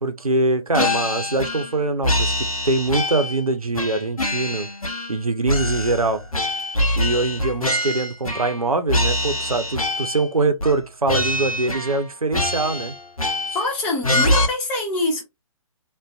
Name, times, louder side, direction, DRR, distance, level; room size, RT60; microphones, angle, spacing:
voice 1, 0.0-2.3 2.6-4.7 5.1-6.2 7.0-12.9, right 2 dB, 90° right, 0.5 m, -23 dB
sound 1, 0.7-1.8 2.0-3.4 3.7-5.2 5.5-8.6 8.9-10.3 10.6-10.8 11.1-12.0 12.3-13.7 14.0-14.5, left 1 dB, 90° left, 0.6 m, -24 dB
voice 2, 13.5-15.2, left 2 dB, 10° left, 0.4 m, -24 dB
2.5 x 2.2 x 2.3 m
figure-of-eight pair, 130°, 18 cm